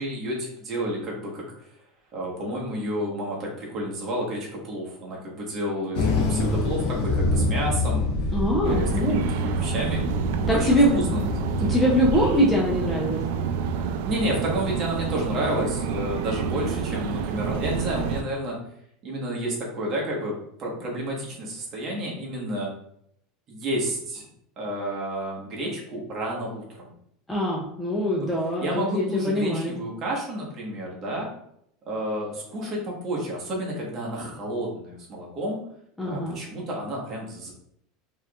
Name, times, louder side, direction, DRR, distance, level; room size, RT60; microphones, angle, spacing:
voice 1, 0.0-1.7 2.1-8.1 8.6-10.0 10.4-11.7 14.0-18.6 19.0-22.7 23.5-24.3 24.6-26.9 28.6-31.3 31.9-35.6 36.0-37.5, right 1 dB, 30° right, -3 dB, 1.2 m, -30 dB
sound 1, 5.9-12.2, left 3 dB, 70° left, 0.9 m, -26 dB
voice 2, 8.3-9.3 10.5-11.0 11.6-13.2 27.3-29.8 36.0-36.4, equal, 5° left, -4 dB, 0.5 m, -23 dB
sound 2, 8.6-18.2, right 7 dB, 70° right, 0.3 m, -28 dB
4.4 x 2.9 x 2.4 m, 0.72 s
supercardioid pair, 160°, 0 cm